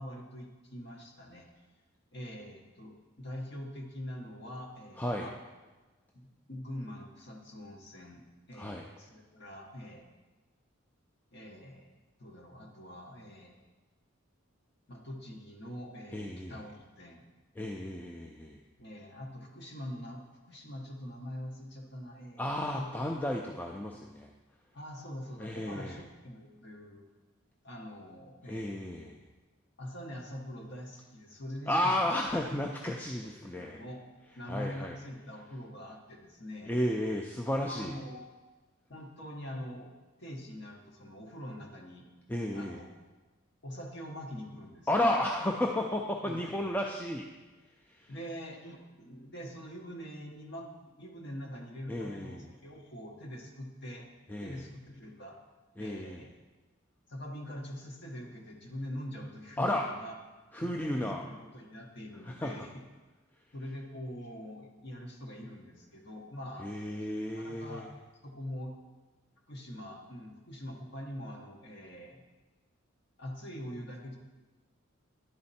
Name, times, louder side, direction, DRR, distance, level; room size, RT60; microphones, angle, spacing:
voice 1, 0.0-1.5 2.1-5.3 6.1-8.2 8.5-10.1 11.3-11.9 12.2-13.7 14.9-17.3 18.8-22.5 22.7-22.9 23.4-23.6 24.7-27.0 27.6-28.8 29.0-29.1 29.8-31.9 33.2-34.0 34.3-36.7 37.6-38.2 38.9-39.9 40.2-42.0 42.5-42.9 43.6-44.9 46.2-46.5 46.8-46.9 48.1-50.7 51.0-54.1 54.4-55.3 55.8-56.3 57.1-60.1 60.6-62.8 63.5-66.7 67.3-67.9 68.2-68.7 69.5-72.2 73.2-74.2, equal, 55° left, 0 dB, 1.2 m, -44 dB
voice 2, 5.0-5.3 8.6-8.9 16.1-16.6 17.6-18.6 22.4-24.3 25.4-26.0 28.4-29.2 31.7-33.8 34.5-35.0 36.7-37.9 42.3-42.8 44.9-47.3 47.9-48.1 51.9-52.5 54.3-54.6 55.8-56.2 59.6-59.8 60.5-61.2 62.2-62.5 66.6-67.9, left 1 dB, 10° left, 0 dB, 0.3 m, -33 dB
10.5 x 4.3 x 4.1 m, 1.2 s
head